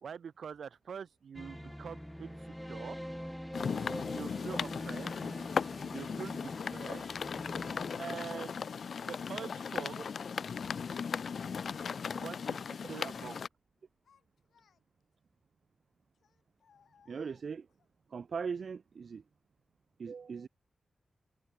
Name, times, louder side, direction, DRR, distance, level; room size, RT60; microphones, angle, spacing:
voice 1, 0.0-3.0 4.1-5.1 5.9-7.0 8.0-8.6 9.1-10.0 12.1-13.4, right 7 dB, 75° right, 3.6 m, -44 dB
sound 1, 1.3-8.8, equal, ahead, 0.5 m, -45 dB
sound 2, 3.5-13.5, left 6 dB, 65° left, 1.0 m, -37 dB
Child speech kid speaking, 13.8-15.1 16.1-17.9, left 7 dB, 85° left, 7.9 m, -70 dB
voice 2, 17.1-17.7 18.1-19.2 20.0-20.5, right 5 dB, 60° right, 0.5 m, -39 dB
wide cardioid pair, 115°, 0 cm